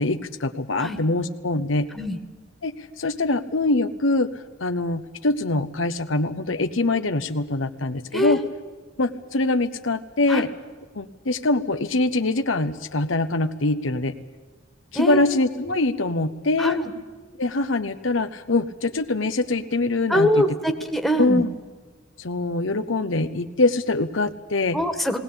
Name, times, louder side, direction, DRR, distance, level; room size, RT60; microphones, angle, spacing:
voice 1, 0.0-1.9 2.6-8.4 9.0-10.5 10.9-14.1 14.9-16.8 17.4-20.4 21.2-21.5 22.2-24.8, left 2 dB, 80° left, 9 dB, 1.0 m, -23 dB
voice 2, 15.0-15.3 16.6-16.8 20.1-21.4 24.7-25.2, equal, ahead, 4 dB, 1.7 m, -23 dB
19.0 x 18.5 x 8.7 m, 1.4 s
head